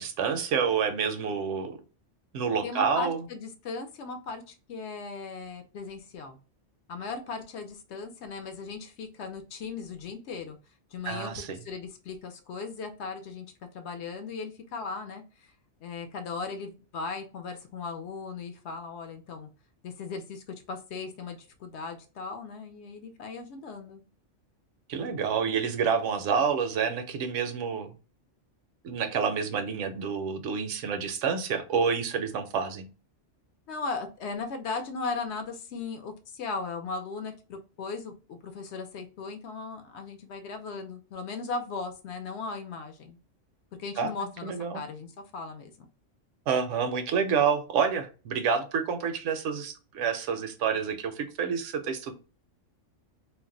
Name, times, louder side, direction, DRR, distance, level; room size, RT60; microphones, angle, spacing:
voice 1, 0.0-1.8 2.3-3.3 11.0-11.6 24.9-27.9 28.8-32.9 44.0-44.1 44.4-44.8 46.5-52.1, right 6 dB, 80° right, 8 dB, 0.9 m, -28 dB
voice 2, 2.6-6.4 6.9-10.6 10.9-13.5 13.7-15.5 15.8-19.5 19.8-24.0 33.7-43.2 43.8-45.9, left 4 dB, 65° left, 6 dB, 0.8 m, -37 dB
2.5 x 2.1 x 3.7 m, 0.34 s
omnidirectional pair, 1.3 m